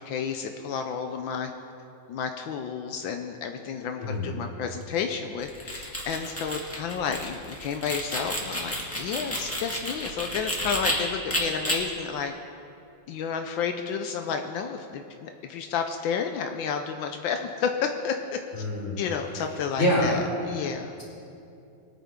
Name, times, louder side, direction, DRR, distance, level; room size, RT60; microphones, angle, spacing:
voice 1, 0.0-1.5 2.1-12.3 13.1-18.6 19.0-20.9, left 6 dB, 80° left, 5 dB, 1.4 m, -31 dB
voice 2, 4.0-4.3 18.5-19.0 19.8-20.2, left 1 dB, 35° left, -8 dB, 4.3 m, -25 dB
sound 1, 5.4-10.9 11.3-11.8, equal, 5° left, 1.7 m, -31 dB
21.5 x 9.3 x 3.7 m, 2.7 s
omnidirectional pair, 2.1 m